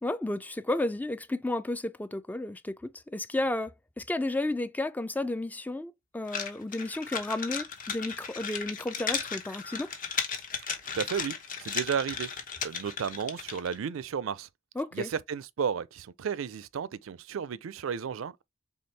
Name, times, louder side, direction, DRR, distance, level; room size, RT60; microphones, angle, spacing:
voice 1, 0.0-2.8 3.1-3.7 4.0-9.9 14.8-15.1, left 2 dB, 10° left, 0.3 m, -32 dB
sound 1, 6.3-13.8, left 6 dB, 45° left, 0.9 m, -35 dB
voice 2, 10.9-12.3 12.6-14.5 14.9-18.4, right 7 dB, 80° right, 0.4 m, -33 dB
4.3 x 3.4 x 3.2 m
head